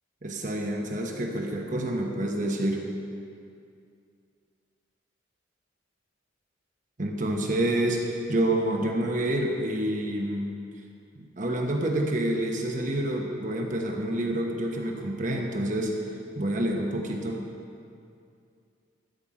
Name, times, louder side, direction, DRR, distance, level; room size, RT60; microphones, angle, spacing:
voice 1, 0.2-2.8 7.0-10.5 11.2-15.9 16.4-17.4, right 1 dB, 40° right, 1 dB, 1.1 m, -28 dB
13.0 x 5.4 x 7.5 m, 2.5 s
head